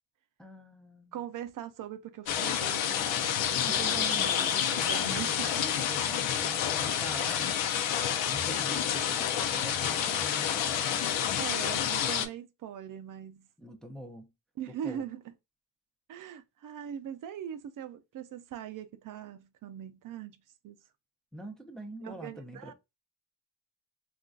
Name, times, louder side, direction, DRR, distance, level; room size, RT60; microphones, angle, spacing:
voice 1, 0.4-1.3 3.6-7.5 8.3-10.8 13.6-14.3 14.7-15.0 21.3-22.7, right 1 dB, ahead, 0.5 m, -44 dB
voice 2, 1.1-5.7 11.4-13.5 14.6-15.3 16.1-20.8 22.0-22.7, right 10 dB, 45° right, 0.5 m, -41 dB
sound 1, 2.3-12.3, left 9 dB, 80° left, 0.7 m, -29 dB
3.8 x 2.4 x 2.3 m
cardioid pair, 125°, 44 cm